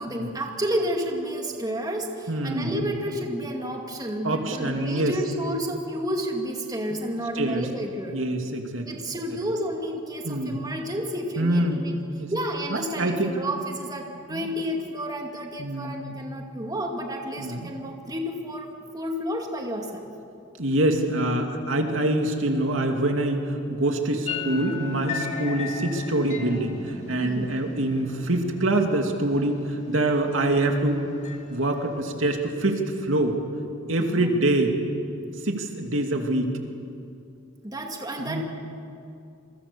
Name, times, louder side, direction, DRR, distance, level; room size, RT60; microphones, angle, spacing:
voice 1, 0.0-8.2 8.9-11.9 12.3-20.1 27.2-27.5 34.1-34.4 37.6-38.4, equal, 20° right, 1 dB, 2.4 m, -31 dB
voice 2, 2.3-2.9 4.2-5.1 7.3-7.7 8.1-8.8 10.2-10.6 11.4-12.3 12.7-13.3 14.3-14.5 15.6-16.2 17.4-17.7 20.6-31.0 31.5-33.4 33.9-34.8 35.4-36.5 38.2-38.4, right 1 dB, 75° right, 3 dB, 2.6 m, -25 dB
sound 1, 24.3-32.0, left 5 dB, 35° left, 2.5 m, -38 dB
28.5 x 24.0 x 7.0 m, 2.5 s
head